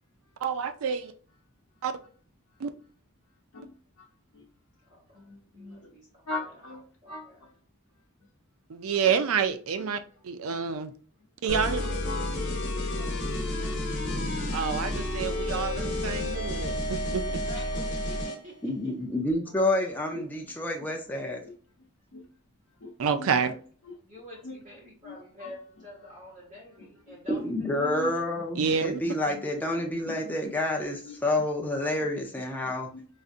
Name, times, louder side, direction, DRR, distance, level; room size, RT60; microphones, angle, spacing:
voice 1, 0.4-1.1 1.8-1.9 2.6-2.7 8.7-10.9 11.4-11.9 14.5-17.2 23.0-23.5 28.6-28.9, right 6 dB, 75° right, 0.4 m, -28 dB
voice 2, 3.5-4.1 4.3-4.5 5.1-5.9 6.3-7.5 9.0-9.1 9.8-9.9 10.5-10.6 11.6-12.8 14.9-15.0 16.3-17.2 18.8-18.9 19.8-19.9 20.1-20.2 21.4-21.5 22.1-22.3 22.8-23.6 23.8-23.9 24.4-24.6 25.0-25.5 27.1-27.2 27.8-28.8 29.0-29.5 30.0-30.1 30.4-30.5 30.8-31.1 32.0-32.1 32.6-33.1, left 2 dB, 75° left, 0.7 m, -42 dB
voice 3, 4.8-6.5 7.0-7.4 12.9-13.8 17.5-18.9 23.1-23.6 24.0-28.1, left 1 dB, 35° right, 0.9 m, -48 dB
sound 1, 11.5-18.4, left 1 dB, 55° left, 0.9 m, -30 dB
voice 4, 18.6-21.4 27.3-32.9, left 1 dB, 10° left, 0.4 m, -29 dB
4.1 x 2.5 x 2.5 m
head